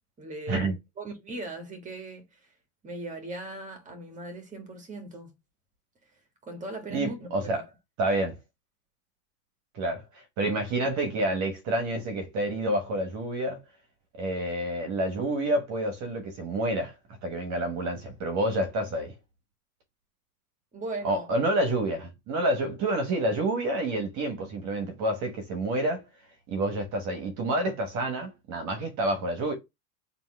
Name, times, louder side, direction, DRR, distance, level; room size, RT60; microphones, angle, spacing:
voice 1, 0.2-2.4 2.8-5.3 6.4-7.6 20.7-21.3, right 2 dB, 15° right, 1.4 m, -39 dB
voice 2, 6.9-7.6 8.0-8.4 9.7-13.6 14.2-16.9 17.2-19.1 21.0-26.0 26.5-29.5, right 1 dB, 35° right, 1.2 m, -28 dB
3.5 x 2.8 x 4.4 m
supercardioid pair, 135°, 47 cm